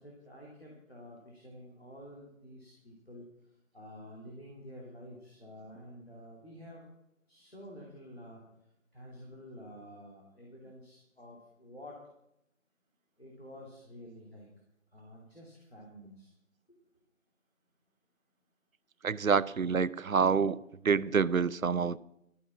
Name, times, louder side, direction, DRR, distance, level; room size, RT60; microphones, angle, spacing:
voice 1, 0.0-3.3 3.7-6.9 7.3-8.4 8.9-12.0 13.2-14.5 14.9-16.3, equal, 45° left, -3 dB, 3.0 m, -50 dB
voice 2, 19.0-20.6 20.8-22.0, right 6 dB, 80° right, 21 dB, 0.6 m, -27 dB
13.0 x 9.4 x 5.9 m, 0.82 s
figure-of-eight pair, 180°, 41 cm